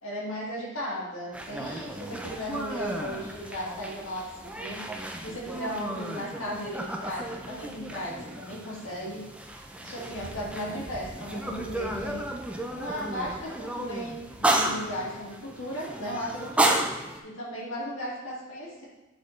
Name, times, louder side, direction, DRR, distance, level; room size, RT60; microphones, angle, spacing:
voice 1, 0.0-4.3 4.6-4.8 5.2-9.2 9.8-12.2 12.7-16.8 17.2-18.8, equal, 70° left, -5 dB, 1.9 m, -36 dB
sound 1, 1.3-17.2, right 1 dB, 5° right, 0.4 m, -33 dB
7.7 x 4.1 x 3.1 m, 1.1 s
head